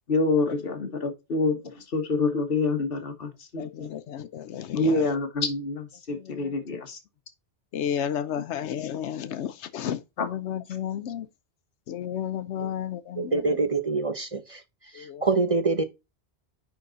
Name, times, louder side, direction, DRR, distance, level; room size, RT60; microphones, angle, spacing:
voice 1, 0.1-3.9 4.7-7.0 10.2-10.3, left 3 dB, 55° left, 1.6 m, -27 dB
voice 2, 3.6-5.1 6.1-6.6 7.7-11.3 11.9-13.6 14.9-15.3, left 9 dB, 80° left, 0.9 m, -33 dB
voice 3, 13.2-14.6 14.9-15.8, right 3 dB, 35° right, 0.7 m, -25 dB
9.8 x 4.0 x 4.0 m
omnidirectional pair, 1.2 m